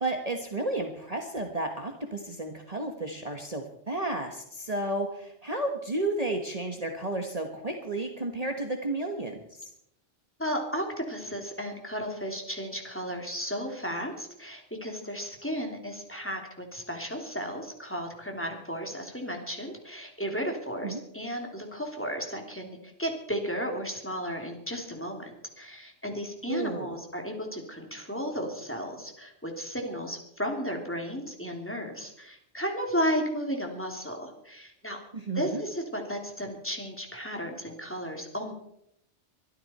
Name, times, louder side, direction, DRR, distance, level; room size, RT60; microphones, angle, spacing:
voice 1, 0.0-9.6 20.8-21.0 26.5-27.0 35.1-35.6, right 2 dB, 30° right, 3 dB, 1.5 m, -32 dB
voice 2, 10.4-35.0 35.3-38.5, equal, 10° left, 2 dB, 2.9 m, -34 dB
23.5 x 13.0 x 4.3 m, 0.76 s
omnidirectional pair, 1.2 m